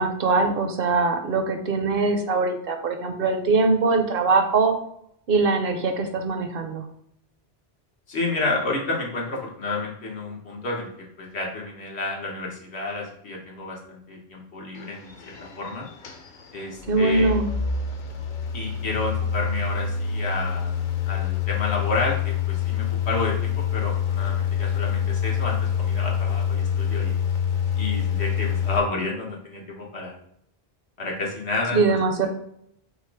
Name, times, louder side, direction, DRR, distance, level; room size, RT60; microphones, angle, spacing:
voice 1, 0.0-4.7 5.3-6.8 16.9-17.5 31.7-32.3, right 3 dB, 65° right, 6 dB, 0.8 m, -22 dB
voice 2, 8.1-15.9 16.5-17.3 18.5-20.7 21.1-27.2 27.7-30.1 31.0-32.0, left 2 dB, 90° left, -1 dB, 1.4 m, -30 dB
sound 1, 14.8-28.8, left 8 dB, 55° left, 0.7 m, -26 dB
5.5 x 2.0 x 4.6 m, 0.71 s
omnidirectional pair, 1.1 m